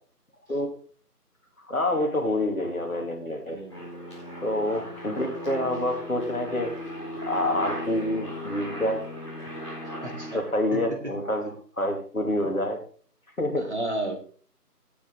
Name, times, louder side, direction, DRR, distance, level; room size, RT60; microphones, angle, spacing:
voice 1, 1.7-3.6 4.4-6.7 7.3-9.0 9.4-9.6 10.3-12.8 13.4-13.6, left 1 dB, 60° left, 3 dB, 2.9 m, -27 dB
voice 2, 3.5-3.8 9.8-10.4 10.7-11.1 13.6-14.1, right 1 dB, 45° right, 2 dB, 2.4 m, -33 dB
Aircraft, 3.7-10.3, left 1 dB, 20° left, 4.2 m, -36 dB
17.5 x 6.3 x 3.9 m, 0.44 s
figure-of-eight pair, 170°, 48 cm